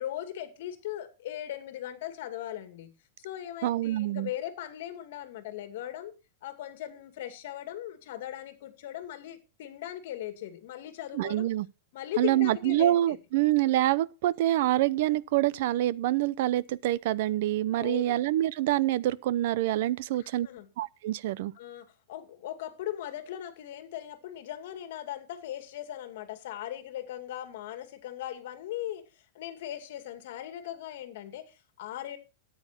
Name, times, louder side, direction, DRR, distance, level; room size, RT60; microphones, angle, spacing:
voice 1, 0.0-2.9 3.2-6.1 6.4-11.5 11.9-13.2 17.7-18.2 20.2-20.7 21.6-32.2, left 12 dB, 55° left, 2.4 m, -39 dB
voice 2, 3.6-4.3 11.1-11.7 12.2-20.5 20.8-21.5, right 14 dB, 55° right, 0.6 m, -26 dB
13.5 x 9.5 x 4.4 m
supercardioid pair, 170°, 0 cm